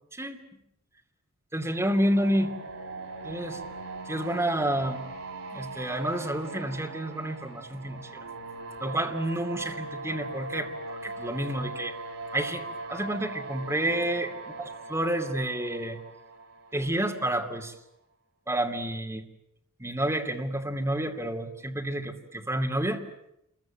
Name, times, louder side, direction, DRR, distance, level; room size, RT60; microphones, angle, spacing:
voice 1, 0.1-0.4 1.5-2.5 3.2-3.6 4.1-5.1 5.5-8.2 8.8-11.9 12.3-14.3 14.9-16.0 16.7-17.7 18.5-19.2 19.8-23.0, right 1 dB, 10° right, 3 dB, 2.7 m, -29 dB
sound 1, 1.7-17.5, right 3 dB, 65° right, 5.1 m, -40 dB
28.0 x 22.5 x 8.9 m, 0.81 s
head